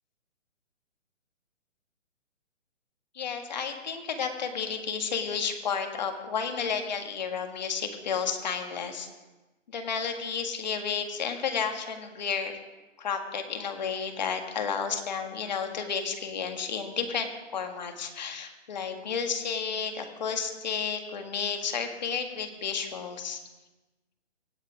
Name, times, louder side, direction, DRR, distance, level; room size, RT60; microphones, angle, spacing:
voice 1, 3.1-9.1 9.7-12.5 13.0-23.4, left 6 dB, 35° left, 5 dB, 1.8 m, -32 dB
25.0 x 8.9 x 5.0 m, 1.1 s
hypercardioid pair, 170°, 38 cm